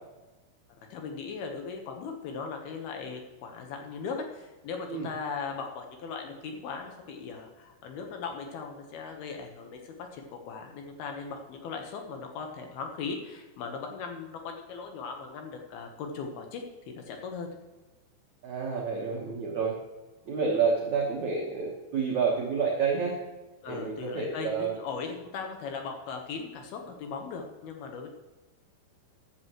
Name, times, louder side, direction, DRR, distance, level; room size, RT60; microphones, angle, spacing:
voice 1, 0.9-17.5 23.6-28.1, left 5 dB, 70° left, 3 dB, 2.6 m, -38 dB
voice 2, 18.4-19.8 20.3-23.2 23.7-24.7, right 5 dB, 70° right, -2 dB, 1.7 m, -29 dB
13.5 x 11.5 x 3.1 m, 1.1 s
omnidirectional pair, 5.6 m